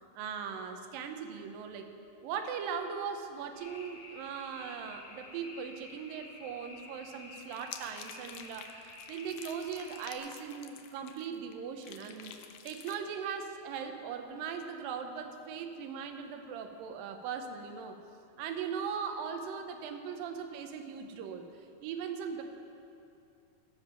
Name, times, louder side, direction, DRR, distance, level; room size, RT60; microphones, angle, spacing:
voice 1, 0.1-1.9 2.2-18.0 18.4-21.5 21.8-22.4, right 6 dB, 75° right, 5 dB, 2.5 m, -39 dB
sound 1, 3.6-10.2, left 2 dB, 70° left, 3.4 m, -51 dB
sound 2, 7.4-11.5 11.8-13.0, left 9 dB, 85° left, 1.7 m, -49 dB
20.0 x 7.2 x 5.7 m, 2.7 s
omnidirectional pair, 4.3 m